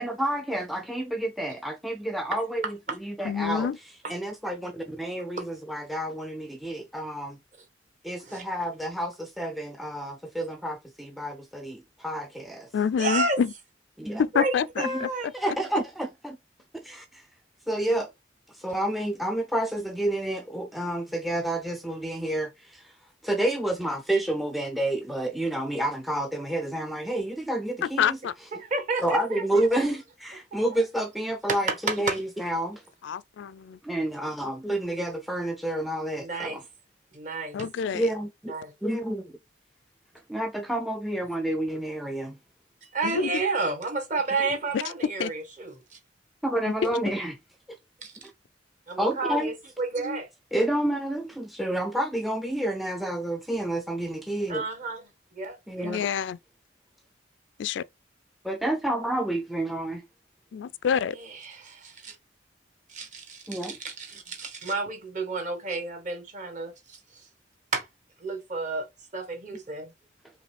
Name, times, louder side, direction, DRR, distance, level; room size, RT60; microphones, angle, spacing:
voice 1, 0.0-3.7 4.1-7.4 8.0-12.7 14.0-14.2 14.8-15.1 15.3-16.4 16.8-17.2 17.7-18.1 18.5-22.9 23.2-28.2 29.0-32.8 33.8-36.6 37.9-38.5 38.8-39.4 40.3-42.4 46.4-47.4 49.0-49.5 50.5-54.6 55.7-56.0 58.4-60.0 63.5-63.8, right 1 dB, ahead, 0.4 m, -29 dB
voice 2, 3.2-3.8 12.7-13.5 14.2-14.9 27.8-28.3 33.0-33.8 37.5-38.1 43.0-43.4 45.2-45.3 46.8-47.1 55.8-56.4 57.6-57.8 60.5-61.2, left 7 dB, 80° left, 0.3 m, -27 dB
voice 3, 13.0-13.4 14.3-15.3 28.5-29.9 30.5-30.6 31.5-32.2 36.2-36.6 37.1-37.7 38.5-38.7 42.8-46.0 48.0-48.2 48.9-50.3 54.5-55.0 55.3-56.0 61.1-62.2 62.9-67.3 67.7-67.9 68.2-68.9 69.1-69.9, right 3 dB, 40° right, 1.3 m, -31 dB
5.0 x 3.1 x 3.3 m
head